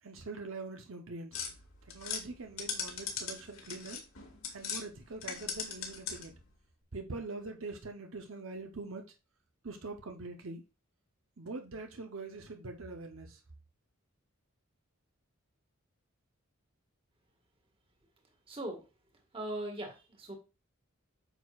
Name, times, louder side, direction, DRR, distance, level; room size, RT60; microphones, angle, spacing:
voice 1, 0.0-1.4 1.8-4.0 4.5-6.4 6.9-9.1 9.6-10.6 11.4-13.4, right 3 dB, 70° right, 0.8 m, -43 dB
sound 1, 1.3-4.8 5.2-6.4, left 6 dB, 75° left, 2.1 m, -39 dB
voice 2, 18.5-18.8 19.3-20.3, right 1 dB, 25° right, 1.7 m, -39 dB
9.0 x 6.3 x 2.4 m
head